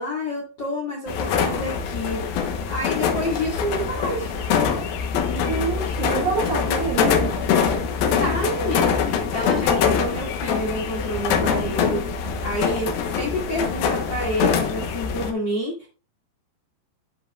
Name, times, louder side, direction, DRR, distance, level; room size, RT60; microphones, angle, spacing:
voice 1, 0.0-4.3 8.2-15.9, equal, 65° left, -1 dB, 1.1 m, -29 dB
sound 1, 1.1-15.3, left 6 dB, 90° left, 2.1 m, -24 dB
voice 2, 5.3-7.5, right 5 dB, 70° right, -1 dB, 1.8 m, -27 dB
13.0 x 5.1 x 2.4 m, 0.35 s
omnidirectional pair, 5.8 m